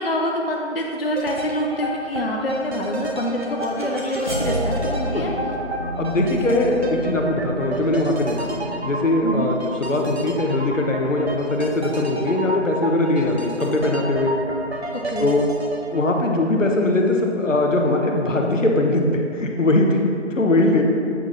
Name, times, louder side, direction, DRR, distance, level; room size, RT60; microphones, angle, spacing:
voice 1, 0.0-5.3 9.2-9.5 14.9-15.3, equal, 50° left, 0 dB, 0.5 m, -26 dB
sound 1, 1.2-17.1 17.4-17.5, right 1 dB, 60° right, 0.8 m, -31 dB
sound 2, 2.8-11.7, right 1 dB, 40° right, 1.1 m, -32 dB
voice 2, 5.0-5.3 6.0-8.5 8.8-14.3 15.2-15.4 15.9-20.8, left 2 dB, 85° left, 1 dB, 1.0 m, -21 dB
8.0 x 6.0 x 2.6 m, 2.5 s
figure-of-eight pair, 180°, 37 cm